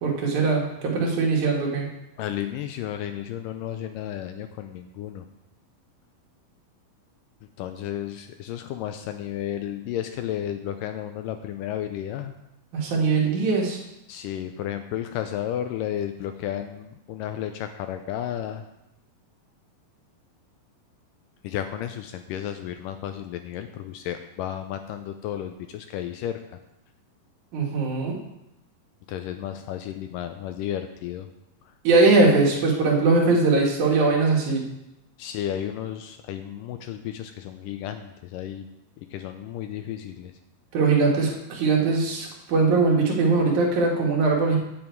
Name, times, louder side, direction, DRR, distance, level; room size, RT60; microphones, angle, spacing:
voice 1, 0.0-1.8 12.7-13.8 27.5-28.2 31.8-34.6 40.7-44.6, right 3 dB, 60° right, -1 dB, 3.0 m, -21 dB
voice 2, 2.2-5.3 7.6-12.3 14.1-18.6 21.4-26.4 29.1-31.3 35.2-38.7 39.0-40.3, left 11 dB, 80° left, 7 dB, 2.0 m, -33 dB
9.4 x 8.8 x 4.6 m, 0.87 s
omnidirectional pair, 4.3 m